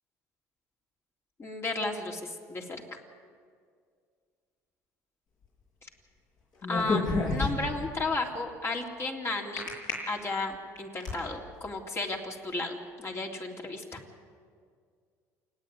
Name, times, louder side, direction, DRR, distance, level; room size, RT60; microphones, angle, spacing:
voice 1, 1.4-2.8 6.7-9.7 10.1-14.0, left 3 dB, 35° left, 1 dB, 3.4 m, -33 dB
sound 1, 6.6-7.9 9.6-9.9 10.5-11.2, left 3 dB, 55° left, 7.8 m, -29 dB
28.5 x 9.7 x 9.7 m, 2.1 s
hypercardioid pair, 70°, 8 cm